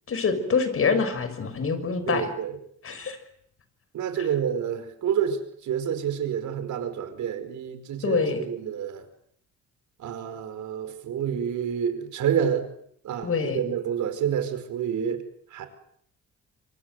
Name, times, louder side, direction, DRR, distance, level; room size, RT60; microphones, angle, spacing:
voice 1, 0.1-2.3 2.8-3.2 8.0-8.4 13.2-13.6, left 5 dB, 45° left, 10 dB, 6.6 m, -25 dB
voice 2, 2.1-2.5 3.9-9.1 10.0-12.7 13.0-15.2 15.5-15.7, right 8 dB, 75° right, 9 dB, 5.1 m, -28 dB
27.0 x 25.5 x 7.9 m, 0.69 s
cardioid pair, 90°, 30 cm